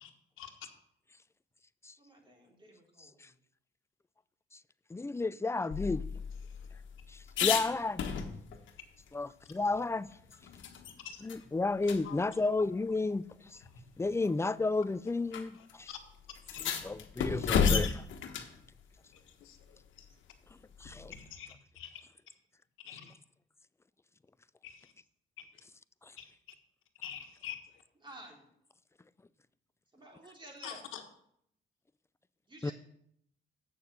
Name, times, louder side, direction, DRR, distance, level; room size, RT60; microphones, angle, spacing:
voice 1, 2.0-3.2 28.0-28.4 29.9-30.8 32.5-32.7, right 1 dB, 25° right, 3.3 m, -52 dB
voice 2, 4.9-6.0 7.4-8.0 9.1-9.3 9.5-10.1 11.2-13.2 14.0-15.5 15.8-15.9 16.8-18.0 20.8-21.1 32.6-32.7, left 3 dB, 15° left, 0.4 m, -31 dB
sound 1, 5.7-8.7 9.1-9.2 9.5-11.0 11.3-11.4 11.8-12.0 13.0-13.1 14.0-14.3 15.3-15.4 15.7-15.8 16.4-18.6 20.8-21.3, left 6 dB, 70° left, 1.4 m, -33 dB
voice 3, 15.5-16.0 19.1-20.1 21.2-22.0 22.8-23.1 24.6-24.9 25.4-25.5 26.2-26.3 27.0-27.6 30.6-31.0, left 10 dB, 90° left, 1.4 m, -46 dB
8.6 x 6.8 x 6.2 m
cardioid pair, 90°, 20 cm